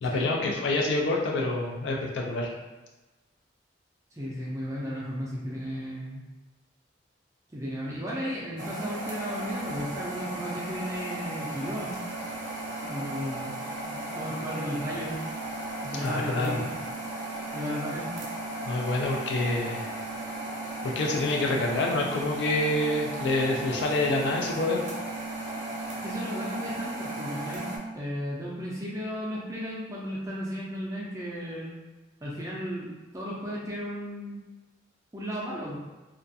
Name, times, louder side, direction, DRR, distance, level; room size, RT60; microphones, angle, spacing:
voice 1, 0.0-2.5 16.0-16.6 18.7-19.9 20.8-24.8, left 2 dB, 75° left, 0 dB, 0.4 m, -27 dB
voice 2, 4.1-6.2 7.5-12.0 12.8-13.6 13.8-15.2 15.8-16.7 17.5-18.2 26.0-27.7 27.9-31.7 32.2-34.4 35.1-35.8, equal, 15° right, -5 dB, 0.4 m, -34 dB
sound 1, 8.6-27.8, right 2 dB, 85° right, 0.5 m, -36 dB
2.4 x 2.2 x 2.6 m, 1.1 s
head